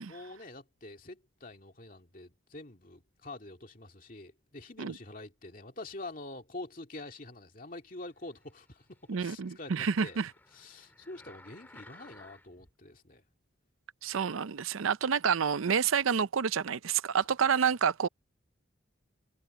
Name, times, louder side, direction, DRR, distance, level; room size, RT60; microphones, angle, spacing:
voice 1, 0.1-10.2 10.5-13.2, left 2 dB, 40° left, 2.4 m, -46 dB
sound 1, 8.1-12.7 13.3-13.4, left 1 dB, 10° left, 2.6 m, -57 dB
voice 2, 9.1-10.3 14.0-18.1, right 7 dB, 85° right, 0.6 m, -28 dB
head